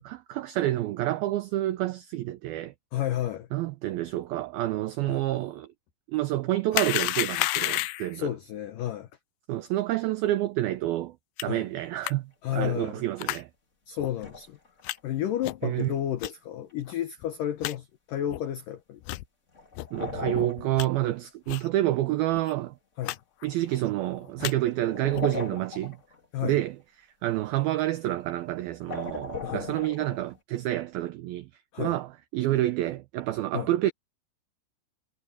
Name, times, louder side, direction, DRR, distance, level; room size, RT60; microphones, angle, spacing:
voice 1, 0.0-2.7 3.5-5.7 6.1-8.3 9.5-11.2 11.4-13.5 15.6-15.9 19.9-22.7 23.4-26.0 26.4-26.8 27.2-31.5 31.8-33.9, right 15 dB, 80° right, 2.1 m, -28 dB
voice 2, 2.9-3.5 5.1-5.2 8.1-9.1 11.4-11.7 12.4-13.0 13.9-14.6 15.0-19.0 23.0-23.2 26.3-26.6 29.4-29.7 31.7-32.0 33.5-33.7, left 11 dB, 65° left, 2.2 m, -31 dB
sound 1, 6.7-8.2 11.4-11.5 12.0-12.1 13.2-13.4 14.0-14.1 14.8-15.0 15.4-15.7 16.2-16.3 16.9-17.0 17.2-17.3 17.6-17.7 18.3-18.4 19.0-19.2 19.7-19.9 20.3-20.9 21.5-21.7 22.0-22.1 22.3-22.5 23.0-23.2 23.4-23.8 24.2-24.5 25.1-25.4, left 18 dB, 90° left, 3.0 m, -31 dB
sound 2, 12.7-12.8 14.2-15.0 15.7-15.8 19.5-21.2 21.5-21.6 22.1-22.2 24.7-26.2 27.8-28.1 28.8-30.4, left 3 dB, 20° left, 2.3 m, -37 dB
omnidirectional pair, 5.1 m